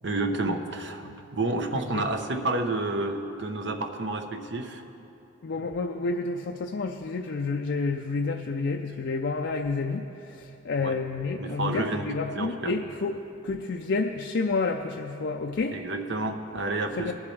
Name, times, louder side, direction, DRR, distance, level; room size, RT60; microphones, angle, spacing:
voice 1, 0.0-4.8 5.6-5.7 10.8-11.0 11.4-12.1 12.3-12.7 15.7-17.1, right 2 dB, 60° right, 5 dB, 0.8 m, -30 dB
voice 2, 1.7-2.1 5.4-15.8 17.0-17.1, left 3 dB, 60° left, 3 dB, 0.4 m, -30 dB
21.0 x 7.2 x 3.3 m, 2.9 s
head